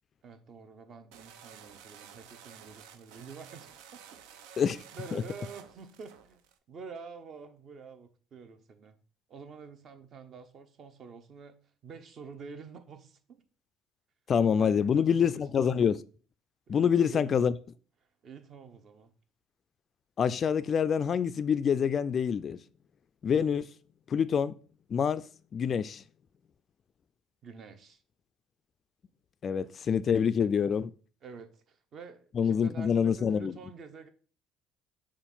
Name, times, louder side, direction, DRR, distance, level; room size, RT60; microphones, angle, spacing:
voice 1, 0.2-4.0 4.9-6.4 6.7-9.0 9.3-13.4 14.6-15.7 16.7-17.4 18.2-19.1 27.4-28.0 31.2-34.1, right 5 dB, 45° right, 0.9 m, -47 dB
sound 1, 1.1-6.6, right 8 dB, 90° right, 0.6 m, -52 dB
voice 2, 14.3-16.0 16.7-17.5 20.2-22.6 23.2-23.7 24.1-24.5 24.9-25.2 25.5-26.0 29.4-30.9 32.4-33.5, left 7 dB, 40° left, 0.3 m, -26 dB
6.8 x 2.5 x 5.4 m
cardioid pair, 110°, 0 cm